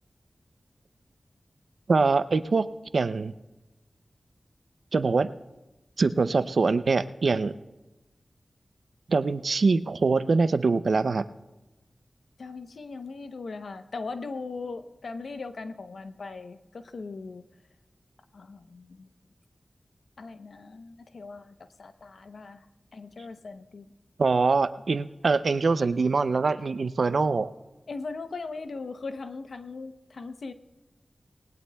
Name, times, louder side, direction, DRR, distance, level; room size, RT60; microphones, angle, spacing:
voice 1, 1.9-2.7 2.9-3.3 4.9-5.3 6.0-7.5 9.1-11.2 24.2-27.5, right 4 dB, 80° right, 13 dB, 0.5 m, -23 dB
voice 2, 12.4-17.5 18.3-19.1 20.2-22.7 22.9-23.9 27.9-30.5, left 4 dB, 85° left, 9 dB, 0.7 m, -39 dB
20.0 x 19.0 x 2.3 m, 1.1 s
wide cardioid pair, 55°, 0 cm